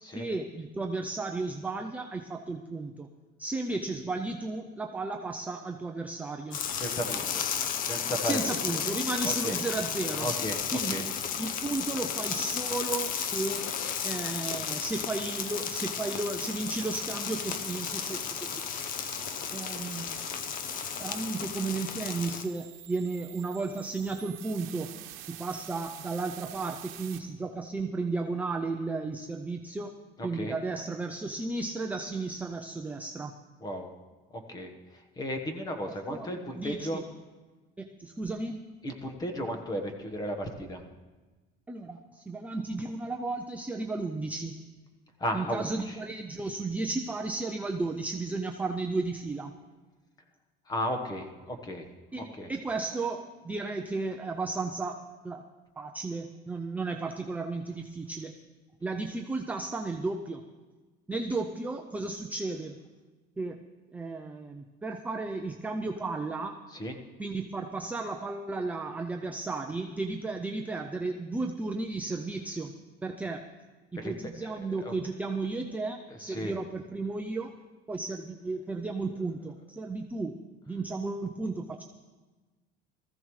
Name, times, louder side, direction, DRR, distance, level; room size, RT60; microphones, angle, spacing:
voice 1, 0.0-3.1 3.4-6.6 8.2-10.3 10.7-11.1 11.4-13.7 14.0-18.5 19.5-20.2 21.0-24.9 25.3-29.9 30.2-33.3 35.8-37.0 37.8-38.7 41.7-44.6 45.3-49.5 52.1-55.4 55.8-58.3 58.8-60.4 61.1-62.8 63.4-66.6 67.2-72.8 73.0-73.5 73.9-77.5 77.9-80.4 80.7-81.8, right 3 dB, 5° right, 3 dB, 0.4 m, -34 dB
sound 1, 6.5-22.5, left 8 dB, 45° left, 0.7 m, -33 dB
voice 2, 6.7-7.4 7.8-8.6 9.2-9.5 10.2-10.6 10.9-11.1 19.7-19.8 30.2-30.6 33.6-33.9 34.5-34.7 35.2-37.0 38.8-40.8 45.2-45.9 50.7-51.8 52.4-52.5 66.7-67.0 74.0-74.1 74.6-74.9 76.2-76.5, equal, 20° left, 5 dB, 1.2 m, -34 dB
sound 2, 15.0-27.2, right 14 dB, 75° right, 1.0 m, -47 dB
19.5 x 14.5 x 3.2 m, 1.3 s
cardioid pair, 165°, 21 cm